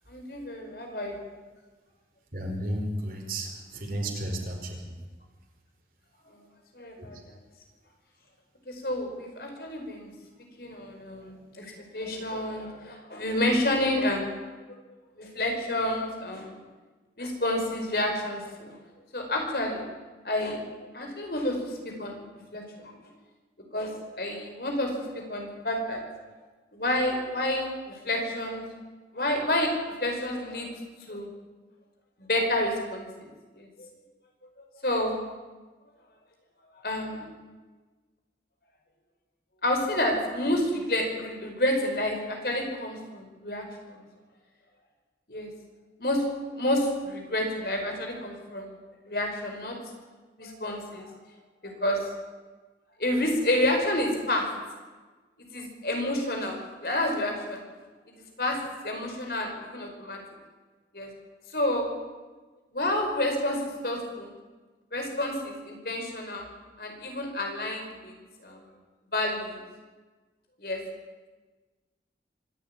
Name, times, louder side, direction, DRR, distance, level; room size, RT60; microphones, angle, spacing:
voice 1, 0.1-1.2 6.3-6.4 6.7-7.3 8.7-10.1 10.6-14.4 15.1-16.6 17.2-18.8 19.1-19.8 20.2-20.6 20.9-22.2 22.5-22.9 23.7-26.0 26.7-28.6 29.1-30.7 31.1-31.3 32.3-33.3 33.5-33.9 34.8-35.2 36.8-37.3 39.6-44.0 45.3-45.5 46.0-46.2 46.6-48.7 49.0-49.8 50.4-51.1 51.6-52.1 53.0-54.4 55.5-57.6 58.1-58.6 58.8-60.2 60.9-61.1 61.5-61.9 62.7-64.3 64.9-66.5 66.8-68.1 68.4-68.6 69.1-69.6 70.6-70.8, left 1 dB, 55° left, 3 dB, 5.0 m, -29 dB
voice 2, 2.3-5.0 7.0-7.1, right 1 dB, 50° right, 2 dB, 4.6 m, -33 dB
25.0 x 12.0 x 9.8 m, 1.3 s
head